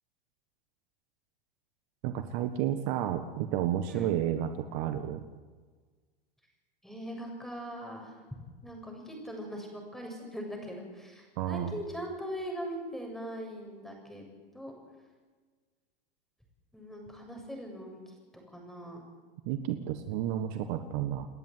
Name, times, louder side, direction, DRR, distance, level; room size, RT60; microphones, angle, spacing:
voice 1, 2.0-5.2 11.4-11.8 19.4-21.3, right 11 dB, 50° right, 9 dB, 1.6 m, -31 dB
voice 2, 6.8-8.2 8.6-14.2 14.5-14.7 16.7-18.0 18.5-19.0, equal, ahead, 1 dB, 7.3 m, -41 dB
29.5 x 10.5 x 9.4 m, 1.4 s
hypercardioid pair, 110°, 29 cm